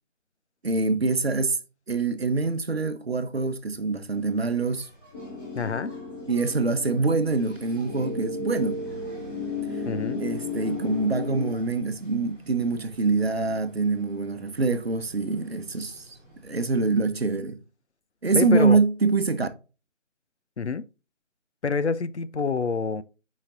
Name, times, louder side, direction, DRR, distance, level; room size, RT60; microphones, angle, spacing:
voice 1, 0.6-1.6 1.9-4.9 6.3-8.8 10.2-16.2 16.4-17.6 18.2-19.5, right 3 dB, 55° right, 0.8 m, -25 dB
Engine, 4.0-17.0, right 1 dB, 5° left, 1.6 m, -49 dB
sound 1, 5.1-11.5, left 3 dB, 20° left, 2.4 m, -34 dB
voice 2, 5.5-5.9 9.8-10.2 18.3-18.8 20.6-20.8 21.6-23.0, left 5 dB, 60° left, 0.6 m, -27 dB
5.4 x 5.1 x 3.7 m
figure-of-eight pair, 160°, 38 cm